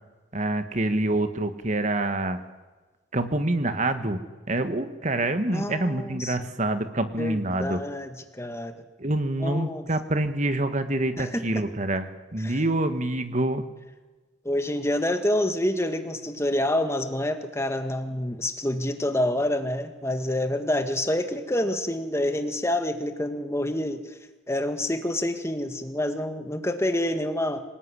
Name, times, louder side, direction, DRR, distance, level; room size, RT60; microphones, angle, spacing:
voice 1, 0.3-2.4 3.1-7.8 9.0-13.6, right 1 dB, 40° right, 9 dB, 1.6 m, -26 dB
voice 2, 5.5-6.5 7.2-8.7 9.4-9.8 11.2-11.6 12.4-12.6 14.4-24.1 24.5-27.6, left 1 dB, 15° left, 8 dB, 1.7 m, -27 dB
26.0 x 19.0 x 9.9 m, 1.3 s
head